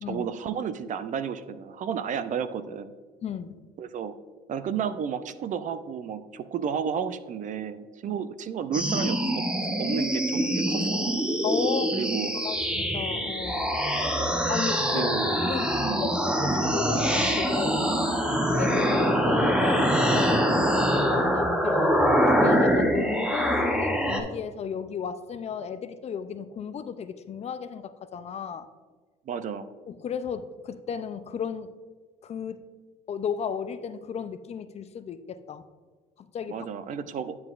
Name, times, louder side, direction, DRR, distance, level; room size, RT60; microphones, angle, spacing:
voice 1, 0.1-2.9 3.8-4.1 4.5-10.9 11.9-12.4 14.9-15.3 15.7-16.0 29.3-29.7 36.5-37.4, right 7 dB, 50° right, 12 dB, 0.4 m, -32 dB
voice 2, 3.2-3.6 8.1-8.2 11.4-12.0 12.3-13.8 14.5-15.7 16.0-17.8 18.3-22.0 22.4-28.7 29.9-31.7 32.2-32.6 33.1-35.6 36.3-36.7, left 7 dB, 40° left, 12 dB, 0.4 m, -34 dB
sound 1, 8.7-24.2, equal, 5° right, 0.8 m, -24 dB
9.3 x 7.7 x 2.4 m, 1.5 s
cardioid pair, 110°, 17 cm